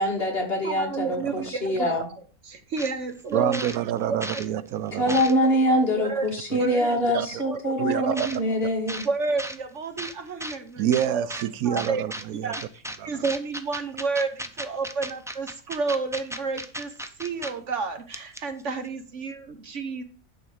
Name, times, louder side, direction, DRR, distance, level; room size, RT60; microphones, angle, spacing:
voice 1, 0.0-2.0 4.9-9.1, equal, 40° left, 2.7 m, -24 dB
voice 2, 0.6-2.0 2.5-3.7 4.1-4.2 5.0-5.5 6.0-6.3 6.5-6.9 7.5-7.7 8.0-8.2 9.0-11.3 11.6-12.0 12.4-16.9 17.2-20.0, right 4 dB, 55° right, 1.3 m, -30 dB
sound 1, 2.8-2.9 3.3-4.5 4.9-5.6 6.4-6.5 8.1-8.4 8.9-9.1 9.4-9.6 10.0-10.6 10.9-11.4 11.8-12.2 12.5-13.0 13.2-17.5 17.8-17.9 18.1-18.6, equal, 5° right, 0.4 m, -35 dB
voice 3, 3.3-5.1 6.5-6.6 7.1-7.4 7.8-8.3 10.8-12.5 13.0-13.2, right 11 dB, 85° right, 1.1 m, -27 dB
10.5 x 4.2 x 7.0 m
omnidirectional pair, 1.5 m